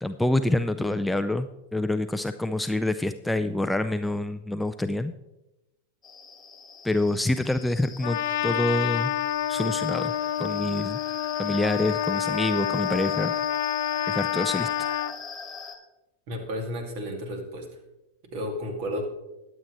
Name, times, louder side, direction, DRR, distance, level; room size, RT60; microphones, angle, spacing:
voice 1, 0.0-5.1 6.8-9.1 9.5-10.1 10.4-11.0 11.4-13.3 14.1-14.9, left 1 dB, 5° left, 10 dB, 0.4 m, -27 dB
sound 1, 6.0-15.8, left 5 dB, 20° left, 1.6 m, -41 dB
Trumpet, 8.0-15.1, left 12 dB, 55° left, 0.6 m, -28 dB
voice 2, 16.3-17.7 18.3-19.0, equal, 45° right, 5 dB, 2.3 m, -32 dB
21.0 x 8.3 x 3.1 m, 0.96 s
figure-of-eight pair, 90°, 0 cm